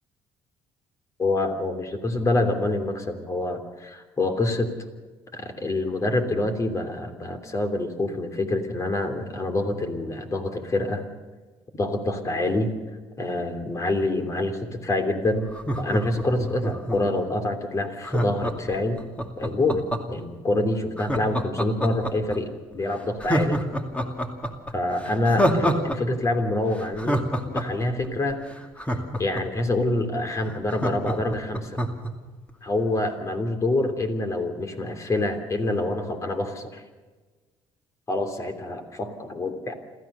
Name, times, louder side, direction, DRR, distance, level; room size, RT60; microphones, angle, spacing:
voice 1, 1.2-4.7 5.3-11.0 11.7-12.7 13.2-15.5 15.7-19.0 19.4-23.6 24.7-28.4 29.2-31.8 32.6-36.8 38.1-39.7, left 2 dB, 30° left, 6 dB, 3.1 m, -26 dB
Laughter, 15.5-17.2 18.0-20.2 21.0-22.4 22.7-22.8 23.2-26.0 26.2-26.3 26.7-29.6 30.1-30.2 30.4-32.1 32.5-32.6, equal, 15° left, 2.4 m, -26 dB
27.0 x 14.5 x 6.8 m, 1.3 s
cardioid pair, 110°, 10 cm